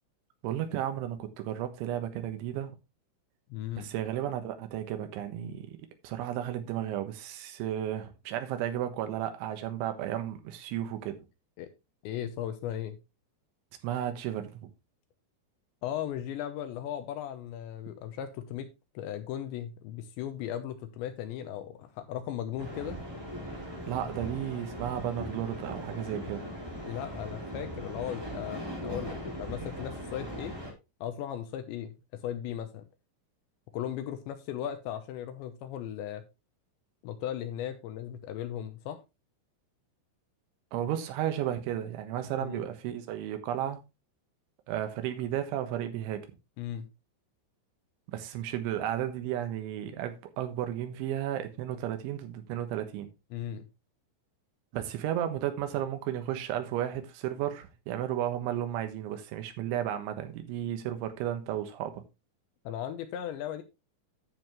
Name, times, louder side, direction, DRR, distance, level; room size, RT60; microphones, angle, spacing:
voice 1, 0.4-2.8 3.8-5.8 6.0-11.2 13.8-14.6 23.9-26.5 40.7-43.8 44.7-46.2 48.1-53.1 54.7-62.0, right 11 dB, 75° right, 3.5 m, -33 dB
voice 2, 3.5-3.9 11.6-11.7 12.0-13.0 15.8-18.7 18.9-23.0 26.9-30.6 31.0-32.9 33.7-36.2 37.0-39.0 42.4-42.6 46.6-46.9 53.3-53.7 62.6-63.6, left 10 dB, 75° left, 2.8 m, -37 dB
sound 1, 22.6-30.7, equal, 5° right, 2.4 m, -39 dB
11.0 x 7.1 x 3.1 m
omnidirectional pair, 5.8 m